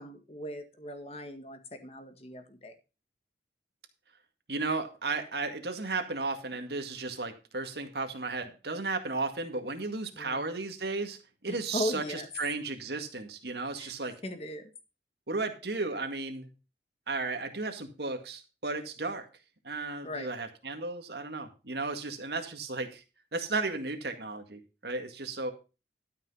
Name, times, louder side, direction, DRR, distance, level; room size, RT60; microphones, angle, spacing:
voice 1, 0.0-2.7 10.2-10.4 11.5-12.3 13.8-13.9 14.2-14.6 20.0-20.3, left 1 dB, 35° left, 7 dB, 1.7 m, -38 dB
voice 2, 4.5-14.2 15.3-16.5 17.1-19.3 19.6-23.0 23.3-25.5, right 3 dB, 70° right, 6 dB, 2.0 m, -34 dB
12.5 x 6.1 x 5.5 m, 0.31 s
head